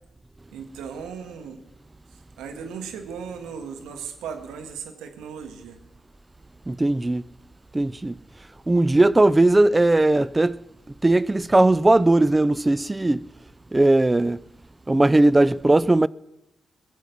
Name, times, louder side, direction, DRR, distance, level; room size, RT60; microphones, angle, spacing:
voice 1, 0.5-1.6 2.4-5.8, right 6 dB, 80° right, 1.7 m, -37 dB
voice 2, 6.7-7.2 7.7-8.2 8.7-10.6 11.0-13.3 13.7-14.4 14.9-16.1, right 2 dB, 20° right, 0.4 m, -18 dB
22.0 x 7.4 x 6.0 m
hypercardioid pair, 45°, 0 cm